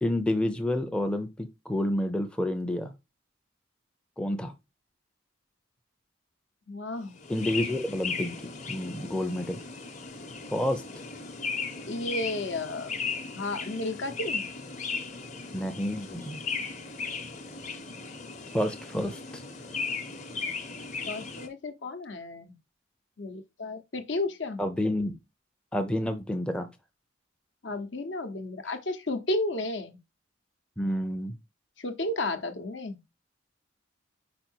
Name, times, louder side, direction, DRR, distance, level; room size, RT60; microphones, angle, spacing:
voice 1, 0.0-2.9 4.2-4.5 7.3-8.4 8.7-9.6 10.5-10.8 15.5-16.4 18.5-19.4 24.6-25.1 25.7-26.7 30.8-31.4, left 1 dB, 5° left, 0.5 m, -29 dB
voice 2, 6.7-7.1 11.9-13.0 13.3-14.5 21.1-22.6 23.2-24.6 27.6-30.0 31.8-33.0, left 2 dB, 65° left, 0.9 m, -33 dB
sound 1, 7.2-21.5, left 4 dB, 35° left, 0.9 m, -37 dB
5.2 x 4.7 x 4.5 m
head